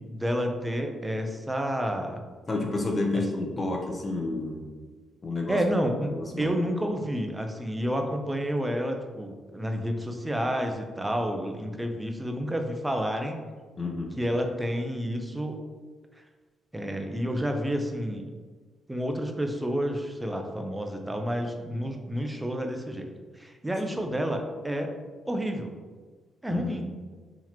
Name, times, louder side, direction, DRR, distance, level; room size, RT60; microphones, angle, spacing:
voice 1, 0.0-2.2 3.1-3.2 5.5-13.4 14.2-15.6 16.7-18.3 18.9-23.1 23.4-24.9 25.3-25.7 26.4-26.9, equal, 10° right, 4 dB, 0.5 m, -30 dB
voice 2, 2.5-4.7 5.2-5.6 6.1-6.5 13.8-14.1 26.5-26.7, left 2 dB, 35° left, 1 dB, 0.8 m, -30 dB
4.0 x 2.9 x 2.9 m, 1.4 s
cardioid pair, 75°, 0 cm